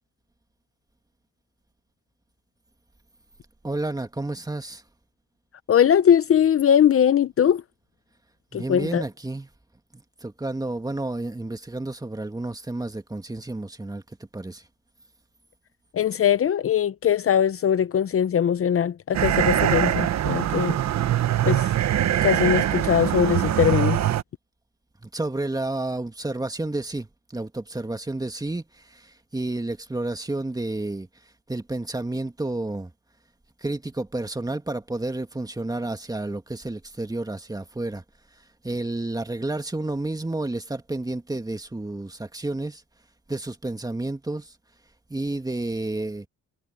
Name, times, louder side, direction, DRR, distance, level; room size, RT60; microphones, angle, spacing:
voice 1, 3.6-4.8 8.5-9.5 9.9-14.0 14.3-14.6 25.0-31.1 31.5-32.9 33.6-38.0 38.6-42.8 43.3-44.5 45.1-46.3, right 2 dB, 10° right, 2.2 m, -30 dB
voice 2, 5.7-7.6 8.5-9.0 15.9-20.8 21.5-24.0, left 9 dB, 45° left, 0.8 m, -21 dB
sound 1, 19.1-24.2, right 11 dB, 65° right, 1.2 m, -23 dB
cardioid pair, 90°, 30 cm